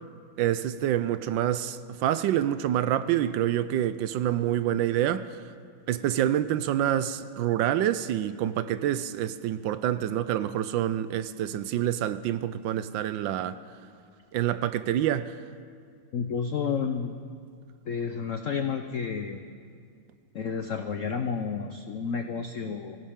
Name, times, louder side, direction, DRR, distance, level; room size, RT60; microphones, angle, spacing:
voice 1, 0.4-5.4 5.9-13.6 14.3-15.3, right 11 dB, 75° right, 1.2 m, -27 dB
voice 2, 16.1-17.2 17.9-19.4 20.3-23.0, left 6 dB, 75° left, 0.7 m, -31 dB
24.5 x 16.0 x 3.7 m
omnidirectional pair, 2.2 m